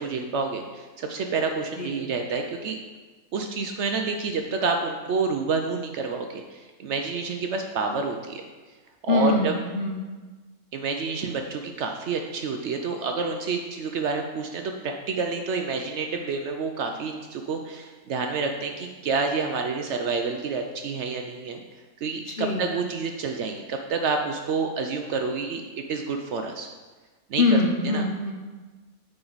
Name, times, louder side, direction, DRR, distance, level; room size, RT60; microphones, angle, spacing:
voice 1, 0.0-2.8 3.3-8.4 9.0-9.6 10.7-21.6 22.0-26.7 27.3-27.5 27.8-28.0, right 4 dB, 70° right, 4 dB, 0.6 m, -28 dB
voice 2, 1.8-2.1 9.1-10.0 22.3-22.8 27.4-28.3, left 3 dB, 65° left, 1 dB, 0.5 m, -24 dB
7.6 x 4.5 x 3.9 m, 1.3 s
omnidirectional pair, 1.7 m